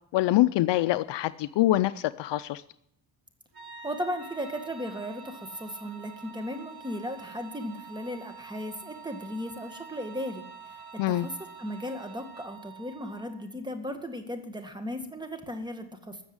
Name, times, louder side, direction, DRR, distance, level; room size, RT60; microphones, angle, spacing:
voice 1, 0.1-2.6 11.0-11.3, left 15 dB, 60° left, 15 dB, 0.6 m, -25 dB
sound 1, 3.5-13.5, right 6 dB, 50° right, 3.7 m, -47 dB
voice 2, 3.8-11.3 11.6-16.2, equal, 10° right, 7 dB, 1.9 m, -36 dB
sound 2, 4.2-12.6, right 1 dB, 30° right, 2.0 m, -54 dB
13.5 x 7.2 x 9.6 m, 0.75 s
cardioid pair, 100°, 49 cm